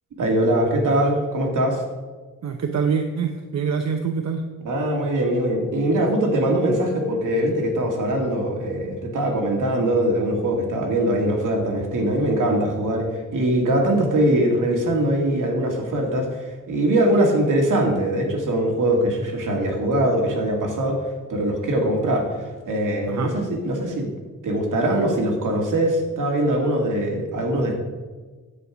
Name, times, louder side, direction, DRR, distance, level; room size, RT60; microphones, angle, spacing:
voice 1, 0.2-1.8 4.6-21.0 21.3-24.1 24.4-27.7, right 1 dB, 80° right, 1 dB, 2.5 m, -22 dB
voice 2, 2.4-4.4 23.1-23.3, right 6 dB, 60° right, 5 dB, 0.8 m, -25 dB
10.0 x 8.3 x 5.1 m, 1.4 s
wide cardioid pair, 120°, 31 cm